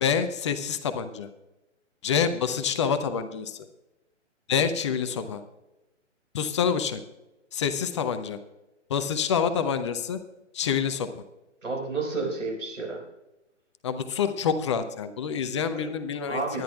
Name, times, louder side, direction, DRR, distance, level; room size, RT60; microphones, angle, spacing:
voice 1, 0.0-1.3 2.0-3.6 4.5-5.4 6.3-7.0 7.5-8.4 8.9-10.2 10.5-11.2 13.8-16.6, left 7 dB, 25° left, 10 dB, 0.6 m, -27 dB
voice 2, 11.6-13.0 15.7-15.9 16.2-16.6, right 3 dB, 90° right, 0 dB, 4.9 m, -31 dB
21.5 x 10.5 x 2.4 m, 0.97 s
figure-of-eight pair, 135°, 37 cm